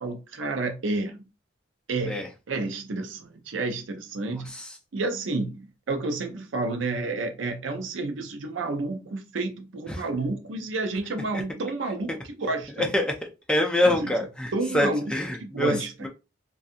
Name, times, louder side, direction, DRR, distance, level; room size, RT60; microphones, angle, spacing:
voice 1, 0.0-1.2 1.9-4.5 4.9-12.9 13.8-14.2 14.5-15.1 15.4-16.1, right 3 dB, 90° right, 0.6 m, -30 dB
voice 2, 13.5-15.7, left 1 dB, 5° left, 0.4 m, -24 dB
2.6 x 2.4 x 2.4 m
head